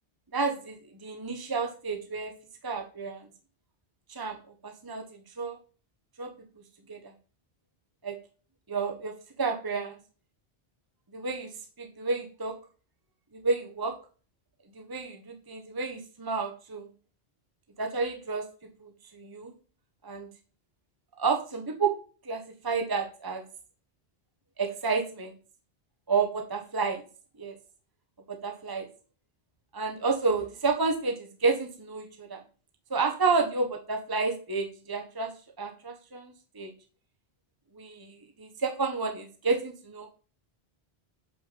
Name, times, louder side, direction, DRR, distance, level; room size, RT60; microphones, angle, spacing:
voice 1, 0.3-0.7 1.0-2.3 2.6-3.2 4.1-4.4 4.6-5.6 6.2-6.3 6.9-7.0 8.0-8.2 8.7-9.1 9.4-10.0 11.1-11.5 11.8-12.5 13.3-13.9 14.7-16.9 17.8-18.4 18.8-19.5 20.0-20.3 21.2-21.9 22.2-23.4 24.6-25.3 26.1-27.0 27.4-27.5 28.3-28.9 29.7-32.4 32.9-35.3 35.6-36.7 37.8-40.1, right 4 dB, 20° right, 3 dB, 1.0 m, -30 dB
6.0 x 5.9 x 6.8 m, 0.39 s
omnidirectional pair, 1.0 m